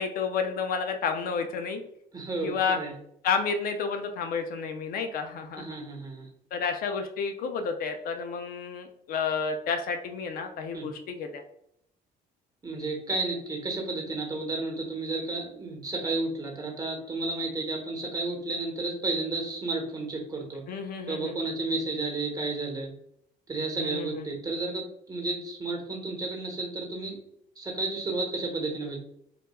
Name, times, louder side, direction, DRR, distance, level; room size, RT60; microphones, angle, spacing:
voice 1, 0.0-1.8 2.4-2.8 3.2-5.8 6.5-11.4 20.7-21.3 23.8-24.2, left 5 dB, 60° left, 6 dB, 0.4 m, -30 dB
voice 2, 2.1-2.9 5.6-6.3 10.7-10.9 12.6-20.6 21.1-22.9 23.5-27.2 27.6-29.0, right 2 dB, 20° right, 1 dB, 0.9 m, -32 dB
4.1 x 2.2 x 2.2 m, 0.73 s
cardioid pair, 110°, 17 cm